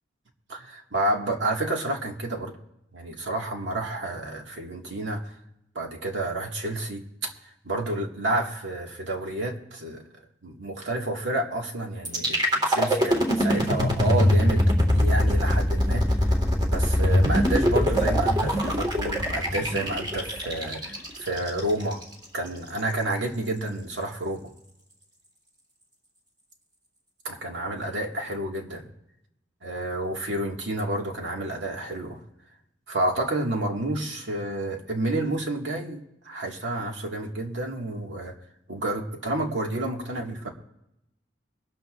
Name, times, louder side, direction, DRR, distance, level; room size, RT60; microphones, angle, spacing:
voice 1, 0.5-2.5 2.9-5.2 5.8-7.0 7.6-10.0 10.4-16.2 16.6-22.0 22.3-24.5 27.2-28.9 29.6-32.2 32.9-38.4 38.7-40.5, right 1 dB, 85° right, 1 dB, 2.0 m, -30 dB
sound 1, 12.1-22.0, equal, 25° right, 1.8 m, -23 dB
23.5 x 13.0 x 2.6 m, 0.84 s
head